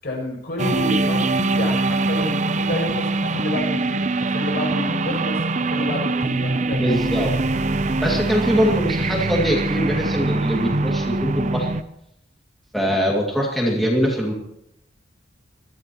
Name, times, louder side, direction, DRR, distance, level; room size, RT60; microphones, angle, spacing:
voice 1, 0.0-6.9, left 1 dB, 55° left, -1 dB, 6.9 m, -29 dB
sound 1, 0.6-11.8, right 2 dB, 40° right, 0.6 m, -23 dB
voice 2, 6.8-7.3 8.0-11.7 12.7-14.3, equal, ahead, -3 dB, 2.3 m, -22 dB
22.5 x 14.5 x 3.0 m, 0.79 s
head